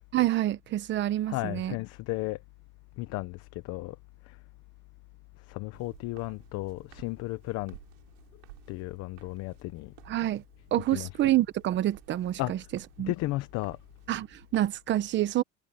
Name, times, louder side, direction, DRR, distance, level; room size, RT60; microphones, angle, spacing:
voice 1, 0.1-1.7 10.1-10.4 10.7-12.6 13.0-13.1 14.1-15.4, right 14 dB, 35° right, 1.0 m, -27 dB
voice 2, 1.3-2.4 3.0-4.0 4.2-4.4 5.4-7.8 8.7-9.9 10.9-11.4 12.4-12.7 13.0-13.8, left 19 dB, 55° left, 1.0 m, -34 dB
Walk footsteps, 5.7-14.8, right 32 dB, 75° right, 5.6 m, -56 dB
cardioid pair, 150°, 30 cm